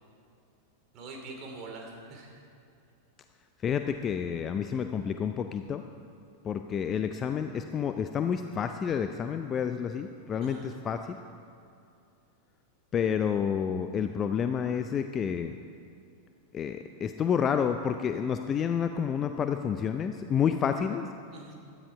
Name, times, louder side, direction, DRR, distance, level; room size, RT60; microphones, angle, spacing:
voice 1, 0.9-2.4 10.4-10.7 21.3-21.5, right 3 dB, 35° right, 1 dB, 2.9 m, -44 dB
voice 2, 3.6-5.8 6.4-11.2 12.9-15.5 16.5-21.1, left 7 dB, 25° left, 8 dB, 0.5 m, -29 dB
16.5 x 12.0 x 4.7 m, 2.5 s
figure-of-eight pair, 90°, 0 cm